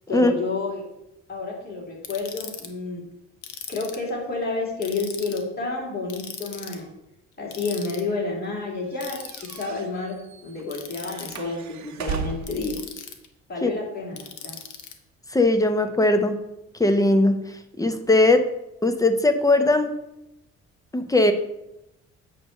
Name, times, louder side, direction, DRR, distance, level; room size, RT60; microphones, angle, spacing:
voice 1, 0.1-0.8 1.3-3.0 3.7-6.9 7.4-9.2 9.5-12.7 13.5-14.6, left 3 dB, 30° left, -3 dB, 3.1 m, -30 dB
Ratchet pawl, 2.0-2.7 3.4-4.1 4.8-5.4 6.1-6.8 7.5-8.0 9.0-9.6 10.7-11.4 12.4-13.3 14.2-14.9, left 8 dB, 75° left, 1.1 m, -38 dB
sound 1, 8.9-12.7, right 6 dB, 65° right, 0.8 m, -36 dB
voice 2, 15.3-16.4 16.8-17.4 17.8-18.5 18.8-19.9 20.9-21.3, left 2 dB, 10° left, 7 dB, 0.9 m, -19 dB
8.5 x 3.3 x 6.5 m, 0.87 s
cardioid pair, 90°, 30 cm